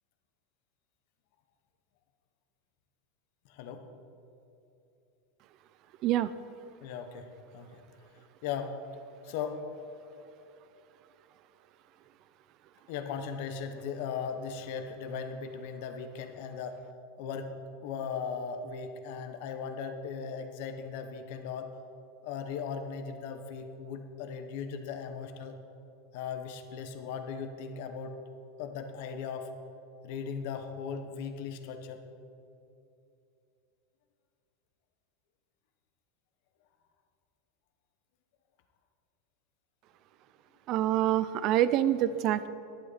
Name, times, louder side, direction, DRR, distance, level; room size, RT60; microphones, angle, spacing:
voice 1, 3.4-3.8 6.8-7.8 8.4-8.8 9.2-9.6 12.9-16.8 17.2-17.5 17.8-21.7 22.2-25.6 26.1-28.2 28.6-29.5 30.0-32.0, left 6 dB, 55° left, 7 dB, 1.1 m, -38 dB
voice 2, 40.7-42.5, right 12 dB, 35° right, 15 dB, 0.4 m, -26 dB
11.5 x 11.0 x 4.1 m, 2.7 s
supercardioid pair, 165°, 0 cm